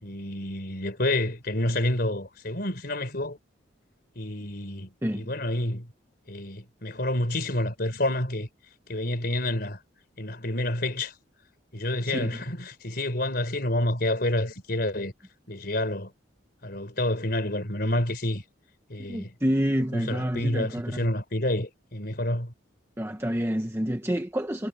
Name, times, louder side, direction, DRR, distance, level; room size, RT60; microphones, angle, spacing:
voice 1, 0.0-3.4 4.2-5.9 6.3-8.5 8.9-9.8 10.2-11.1 11.7-15.1 15.5-16.1 16.6-18.4 18.9-19.3 19.9-22.5, left 1 dB, 50° left, 4.3 m, -28 dB
voice 2, 12.1-12.4 19.1-21.1 23.0-24.7, equal, 15° right, 1.0 m, -28 dB
head